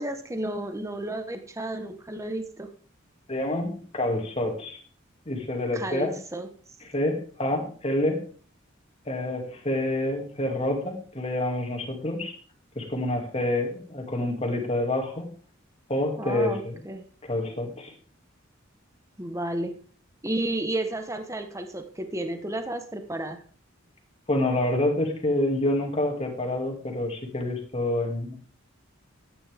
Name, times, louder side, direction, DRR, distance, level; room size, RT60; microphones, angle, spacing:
voice 1, 0.0-2.7 5.7-6.5 16.2-17.1 19.2-19.7 20.2-23.4, right 1 dB, 15° right, 6 dB, 1.3 m, -32 dB
voice 2, 3.3-4.8 5.3-6.2 6.8-8.2 9.0-12.3 12.7-15.3 15.9-16.8 17.2-17.9 24.3-28.3, left 1 dB, 30° left, 1 dB, 2.6 m, -27 dB
13.5 x 9.7 x 3.6 m, 0.42 s
head